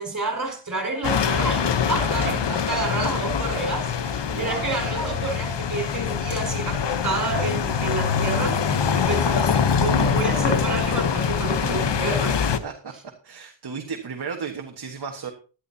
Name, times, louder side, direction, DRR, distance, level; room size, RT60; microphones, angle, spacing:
voice 1, 0.0-12.6, right 2 dB, 40° right, 4.8 m, -29 dB
sound 1, 1.0-12.6, left 7 dB, 65° left, 1.0 m, -24 dB
voice 2, 2.0-2.6 4.0-4.7 8.8-9.1 12.6-12.9 13.2-15.3, right 6 dB, 55° right, 1.5 m, -34 dB
16.0 x 11.5 x 2.8 m
wide cardioid pair, 105°, 46 cm